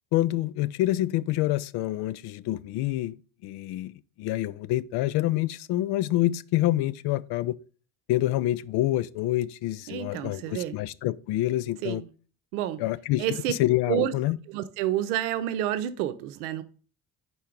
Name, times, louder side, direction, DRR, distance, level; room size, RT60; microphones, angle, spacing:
voice 1, 0.1-3.2 3.4-7.6 8.1-12.0 12.8-14.4, left 15 dB, 65° left, 0.5 m, -27 dB
voice 2, 9.9-10.7 11.8-12.1 12.5-12.8 13.2-13.5 13.9-14.1 14.5-16.6, right 12 dB, 85° right, 0.6 m, -29 dB
4.6 x 4.3 x 5.0 m
hypercardioid pair, 55°, 43 cm